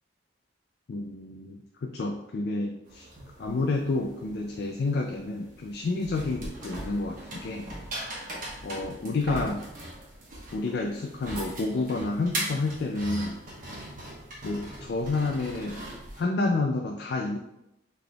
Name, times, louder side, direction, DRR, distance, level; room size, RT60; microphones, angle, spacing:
voice 1, 0.9-3.1 3.4-7.7 8.6-9.6 10.5-13.4 14.4-15.8 16.2-17.4, left 3 dB, 55° left, 3 dB, 0.4 m, -29 dB
sound 1, 2.8-16.2, right 1 dB, 45° right, 1.1 m, -39 dB
5.8 x 3.4 x 2.3 m, 0.86 s
head